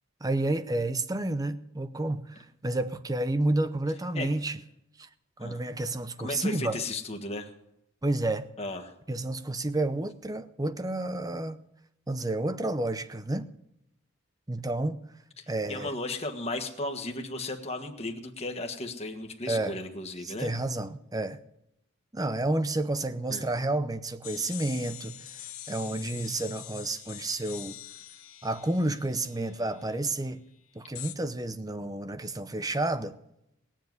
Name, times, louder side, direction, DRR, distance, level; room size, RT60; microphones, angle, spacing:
voice 1, 0.2-4.6 5.0-5.1 5.4-6.8 8.0-8.5 9.1-11.6 12.1-13.5 14.5-15.0 15.5-15.9 19.5-19.8 20.2-21.4 22.1-27.8 28.4-30.4 30.7-33.1, right 2 dB, 15° right, 0.7 m, -30 dB
voice 2, 6.2-7.5 8.6-8.9 15.4-20.5 23.3-23.5, left 2 dB, 30° left, 1.5 m, -35 dB
sound 1, 24.2-29.9 31.0-31.2, left 12 dB, 70° left, 1.2 m, -44 dB
20.0 x 7.4 x 9.4 m
head